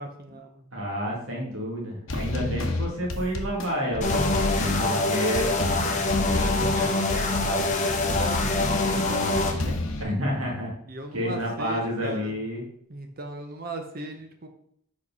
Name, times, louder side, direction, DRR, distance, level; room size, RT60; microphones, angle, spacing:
voice 1, 0.0-0.6 2.2-2.6 4.5-9.9 10.9-12.4 12.9-14.5, right 1 dB, 45° right, 5 dB, 0.7 m, -38 dB
voice 2, 0.7-4.5 4.8-5.6 10.0-10.7 11.1-12.6, equal, 85° right, -2 dB, 2.1 m, -29 dB
sound 1, 2.1-10.0, left 1 dB, 70° left, 0.8 m, -30 dB
sound 2, 4.0-9.5, left 2 dB, 35° left, 0.8 m, -25 dB
4.9 x 4.6 x 5.4 m, 0.67 s
head